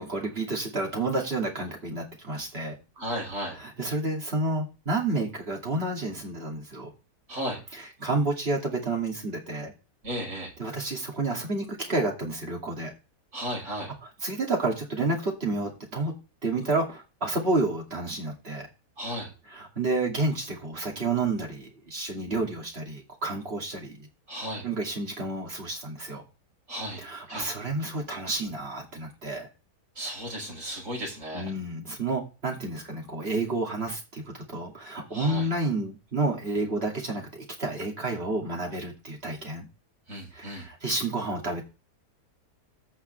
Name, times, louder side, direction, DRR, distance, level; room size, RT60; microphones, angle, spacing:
voice 1, 0.0-2.8 3.6-6.9 8.0-9.7 10.6-12.9 13.7-13.8 14.2-16.1 16.4-18.7 19.5-24.1 24.6-26.2 27.0-29.5 31.3-37.3 37.6-39.7 40.3-41.6, right 2 dB, 40° right, 0 dB, 2.8 m, -30 dB
voice 2, 3.0-3.6 7.3-7.6 10.0-10.5 13.3-13.9 19.0-19.3 24.3-24.6 26.7-27.0 27.3-27.5 30.0-31.5 35.1-35.5 40.1-40.7, equal, 55° right, -1 dB, 5.3 m, -34 dB
15.0 x 5.8 x 3.3 m, 0.31 s
omnidirectional pair, 1.6 m